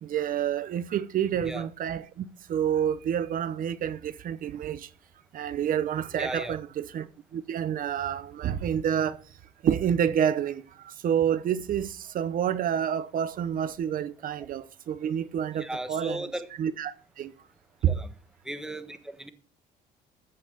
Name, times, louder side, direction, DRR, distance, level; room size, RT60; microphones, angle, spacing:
voice 1, 0.0-4.9 5.3-7.1 7.3-9.2 9.6-17.3 17.8-18.0, right 9 dB, 55° right, 0.9 m, -28 dB
voice 2, 6.2-6.6 15.6-16.5 17.9-18.1 18.4-19.3, right 1 dB, 5° right, 1.3 m, -36 dB
14.5 x 5.8 x 6.7 m
cardioid pair, 110°, 17 cm